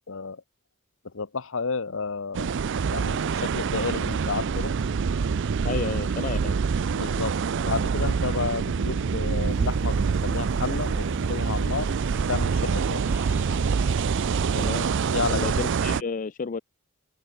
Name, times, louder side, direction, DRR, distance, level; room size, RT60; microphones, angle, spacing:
voice 1, 0.1-0.4 1.0-2.5 2.9-4.8 6.9-7.4 7.6-11.9 12.3-13.2 15.1-15.5, left 4 dB, 65° left, 1.0 m, -31 dB
sound 1, 2.3-16.0, right 5 dB, 60° right, 0.4 m, -26 dB
voice 2, 5.6-6.6 14.5-14.9 15.3-16.6, left 5 dB, 40° left, 0.5 m, -31 dB
sound 2, 9.5-15.3, equal, 10° right, 3.3 m, -42 dB
open air
head